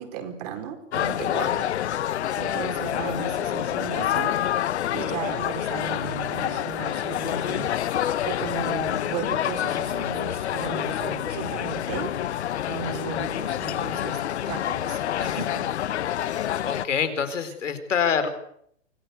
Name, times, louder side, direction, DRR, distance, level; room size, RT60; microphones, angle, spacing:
voice 1, 0.0-1.7 2.3-7.7 8.2-12.4 12.7-15.7, right 8 dB, 35° right, 6 dB, 4.6 m, -36 dB
sound 1, 0.9-16.9, left 11 dB, 65° left, 0.9 m, -27 dB
voice 2, 16.6-18.3, left 7 dB, 85° left, 10 dB, 4.3 m, -25 dB
26.0 x 17.5 x 8.2 m, 0.70 s
hypercardioid pair, 160°, 36 cm